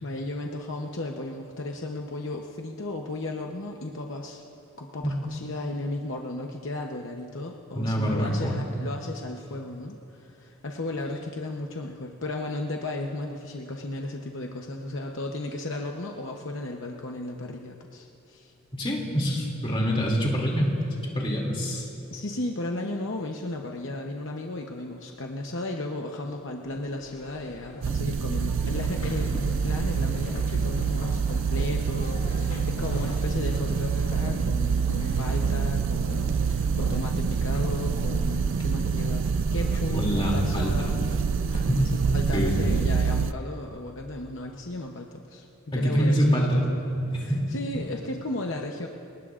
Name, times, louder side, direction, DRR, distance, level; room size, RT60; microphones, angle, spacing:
voice 1, 0.0-4.4 4.8-18.5 22.1-41.0 41.9-46.8 47.1-48.9, left 2 dB, 60° left, 1 dB, 0.9 m, -35 dB
voice 2, 7.7-8.5 18.7-20.7 21.0-21.9 39.9-41.0 41.7-41.9 42.3-42.7 45.7-46.7 47.0-47.4, equal, 25° left, -2 dB, 2.7 m, -25 dB
sound 1, 26.7-43.3, left 1 dB, 80° left, 1.8 m, -41 dB
sound 2, 27.8-43.3, right 6 dB, 60° right, 0.4 m, -26 dB
29.0 x 19.5 x 2.5 m, 2.8 s
head